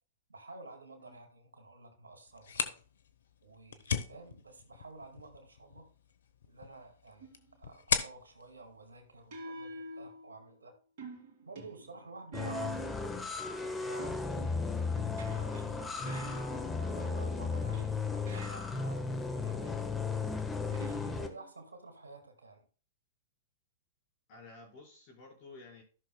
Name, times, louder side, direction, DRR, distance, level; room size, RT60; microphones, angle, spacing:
voice 1, 0.3-2.8 3.4-5.9 6.5-10.8 11.4-14.6 15.3-16.5 16.8-20.0 21.0-22.7, right 3 dB, 90° right, 5 dB, 1.9 m, -51 dB
sound 1, 2.3-9.8, left 7 dB, 75° left, 0.9 m, -39 dB
sound 2, 7.2-7.5 9.3-10.6 11.0-13.2 14.0-17.0 17.7-19.0 20.7-21.6, right 2 dB, 55° right, 2.3 m, -48 dB
sound 3, 12.3-21.3, left 4 dB, 10° left, 1.2 m, -35 dB
voice 2, 24.3-25.8, left 3 dB, 45° left, 0 dB, 4.7 m, -53 dB
14.5 x 6.1 x 2.2 m, 0.40 s
hypercardioid pair, 110°, 0 cm